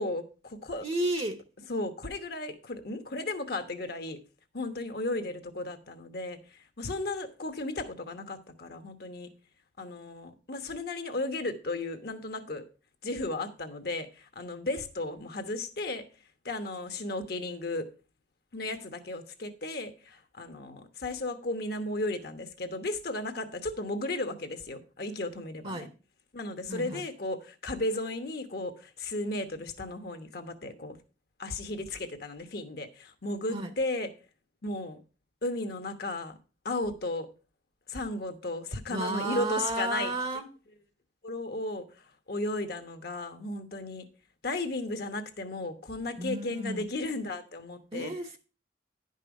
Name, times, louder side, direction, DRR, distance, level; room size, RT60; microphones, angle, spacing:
voice 1, 0.0-0.8 1.7-4.2 4.5-9.3 9.8-12.6 13.0-16.0 16.4-17.9 18.5-25.9 26.3-31.0 31.4-34.1 34.6-35.0 35.4-36.3 36.6-37.3 37.9-40.1 41.2-44.1 44.4-48.1, left 2 dB, 60° left, 1.2 m, -35 dB
voice 2, 0.8-1.4 25.6-25.9 26.7-27.0 33.5-33.7 38.9-40.5 46.2-46.9 47.9-48.4, right 2 dB, 30° right, 0.8 m, -32 dB
10.5 x 5.4 x 5.2 m
head